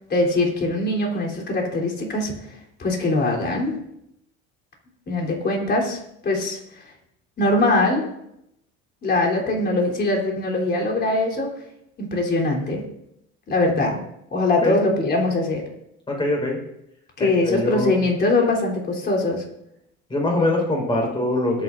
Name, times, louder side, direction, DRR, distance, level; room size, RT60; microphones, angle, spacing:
voice 1, 0.1-3.8 5.1-6.8 7.4-8.1 9.0-11.5 12.0-12.8 13.5-14.0 14.3-15.6 17.2-19.4, left 2 dB, 30° left, -1 dB, 3.6 m, -22 dB
voice 2, 16.1-16.6 17.2-18.0 20.1-21.6, left 2 dB, 15° left, -1 dB, 4.7 m, -23 dB
20.5 x 9.6 x 2.6 m, 0.80 s
cardioid pair, 130°, 30 cm